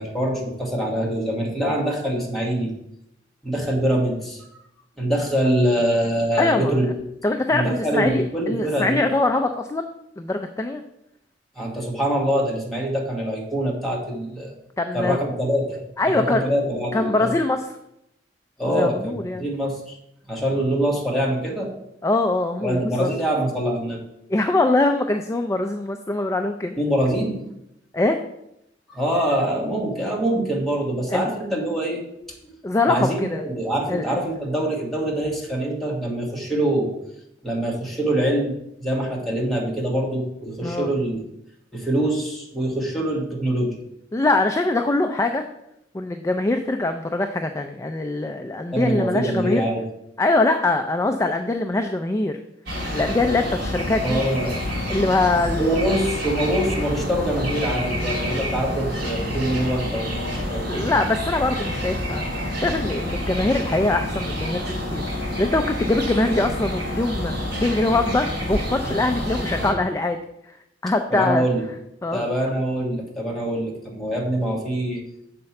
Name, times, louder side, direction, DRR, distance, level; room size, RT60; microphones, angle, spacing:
voice 1, 0.0-2.7 3.4-4.4 5.0-6.9 7.5-9.0 11.6-14.5 14.9-17.3 18.6-20.0 20.3-21.7 22.6-24.0 26.8-27.4 28.9-32.0 32.9-36.9 37.4-41.2 41.7-43.8 48.7-49.8 54.0-54.6 55.6-60.8 71.1-71.6 72.1-75.0, right 1 dB, ahead, -3 dB, 1.4 m, -24 dB
voice 2, 6.4-6.9 7.2-9.9 10.2-10.8 14.8-15.2 16.0-16.5 16.9-17.7 18.7-19.5 22.0-23.1 24.3-26.8 27.9-28.2 31.1-31.3 32.6-33.4 33.9-34.2 40.6-40.9 44.1-45.4 45.9-49.6 50.2-52.4 52.9-54.2 54.9-55.8 60.7-65.0 65.4-67.3 67.6-70.2 70.5-70.6 70.8-71.4 72.0-72.3, left 2 dB, 15° left, 6 dB, 0.3 m, -23 dB
sound 1, 52.7-69.7, equal, 60° right, 2.5 m, -28 dB
6.6 x 4.2 x 5.8 m, 0.82 s
head